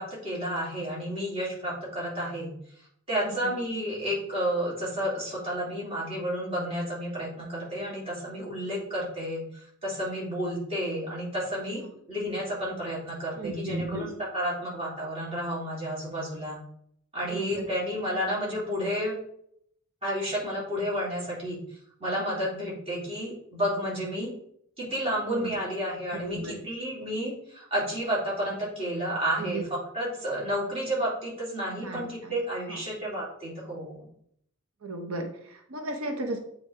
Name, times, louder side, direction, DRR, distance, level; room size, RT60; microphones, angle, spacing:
voice 1, 0.0-2.5 3.1-11.8 12.1-14.1 14.3-16.6 17.1-19.2 20.0-21.6 22.0-24.3 24.8-29.6 29.9-34.1, equal, 30° right, -6 dB, 2.7 m, -31 dB
voice 2, 3.2-3.6 11.7-11.9 13.4-14.1 17.2-17.7 25.0-25.6 26.1-26.6 29.4-29.6 31.8-32.4 32.7-32.9 34.8-36.4, right 2 dB, 80° right, 4 dB, 0.9 m, -35 dB
8.2 x 4.3 x 3.3 m, 0.69 s
head